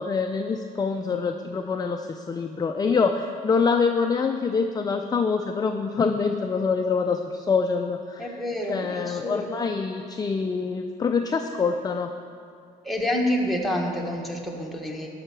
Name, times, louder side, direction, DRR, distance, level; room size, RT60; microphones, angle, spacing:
voice 1, 0.0-8.4 8.7-12.1, left 5 dB, 25° left, 5 dB, 0.5 m, -25 dB
voice 2, 8.2-9.7 12.8-15.1, left 1 dB, ahead, -1 dB, 1.5 m, -28 dB
13.0 x 5.7 x 6.0 m, 2.3 s
cardioid pair, 110°, 17 cm